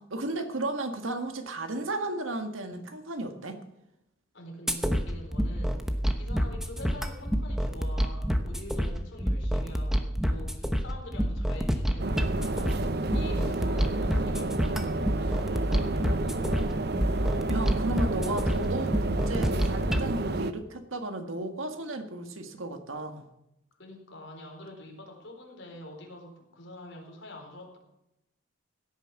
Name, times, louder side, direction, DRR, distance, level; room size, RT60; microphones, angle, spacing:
voice 1, 0.0-3.6 17.5-23.2, right 2 dB, 75° right, 6 dB, 1.8 m, -34 dB
voice 2, 4.3-16.8 23.8-27.8, left 1 dB, 60° left, 1 dB, 4.2 m, -45 dB
sound 1, 4.7-20.1, equal, ahead, 0.9 m, -28 dB
sound 2, 12.0-20.5, right 2 dB, 50° right, 0.7 m, -31 dB
16.5 x 9.1 x 6.0 m, 0.86 s
head